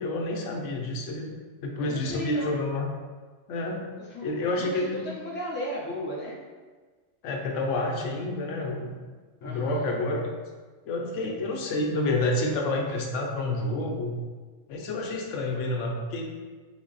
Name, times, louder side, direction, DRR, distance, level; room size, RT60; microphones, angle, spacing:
voice 1, 0.0-1.3 1.6-2.9 3.5-3.9 4.2-5.1 7.2-8.9 9.4-10.3 10.9-14.2 14.7-16.3, left 2 dB, 85° left, 1 dB, 0.9 m, -29 dB
voice 2, 1.8-2.7 4.1-4.3 4.6-6.4 9.4-10.0, equal, 15° left, -5 dB, 0.5 m, -35 dB
3.8 x 2.0 x 3.8 m, 1.4 s
omnidirectional pair, 1.2 m